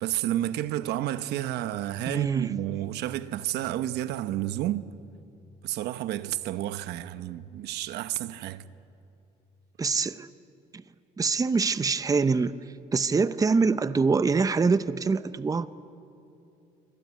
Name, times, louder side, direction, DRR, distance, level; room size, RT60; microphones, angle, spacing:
voice 1, 0.0-4.9 5.6-8.6, right 13 dB, 80° right, 1.0 m, -31 dB
voice 2, 2.1-2.5 9.8-10.3 10.7-10.8 11.2-12.5 12.9-15.7, right 4 dB, 20° right, 0.8 m, -24 dB
25.5 x 25.0 x 9.3 m
cardioid pair, 110°, 17 cm